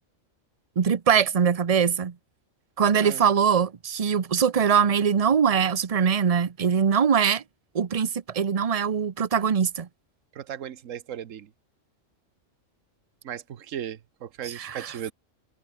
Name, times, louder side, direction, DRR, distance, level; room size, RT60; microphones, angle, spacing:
voice 1, 0.8-2.1 2.8-7.4 7.7-9.9 14.6-14.7, right 7 dB, 35° right, 0.7 m, -22 dB
voice 2, 3.0-3.3 10.3-11.5 13.2-15.1, right 9 dB, 80° right, 1.3 m, -36 dB
omnidirectional pair, 1.3 m